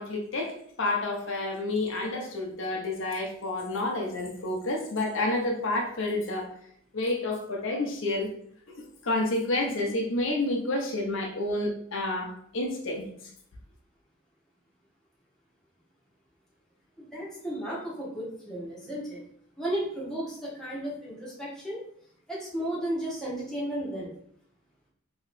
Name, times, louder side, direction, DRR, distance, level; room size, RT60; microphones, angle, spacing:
voice 1, 0.0-6.5 6.9-8.3 8.7-13.0, left 2 dB, 70° left, 1 dB, 0.7 m, -29 dB
voice 2, 17.0-19.2 19.6-21.8 22.3-24.1, right 1 dB, 5° left, -7 dB, 1.0 m, -34 dB
3.1 x 2.8 x 3.1 m, 0.66 s
head